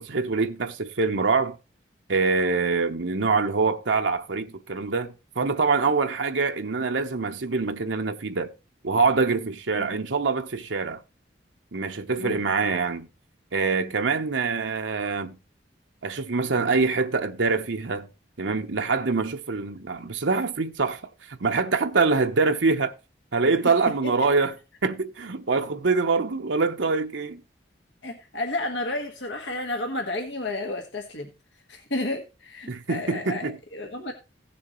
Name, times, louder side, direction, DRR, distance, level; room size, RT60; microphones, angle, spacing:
voice 1, 0.0-1.6 2.1-8.5 8.8-11.0 11.7-13.1 13.5-15.4 16.0-18.1 18.4-21.0 21.3-22.9 23.3-24.5 24.8-27.4 32.7-33.5, right 4 dB, 80° right, 0.9 m, -25 dB
voice 2, 28.0-31.3 31.7-34.1, left 2 dB, 80° left, 1.6 m, -31 dB
16.5 x 7.2 x 3.1 m
head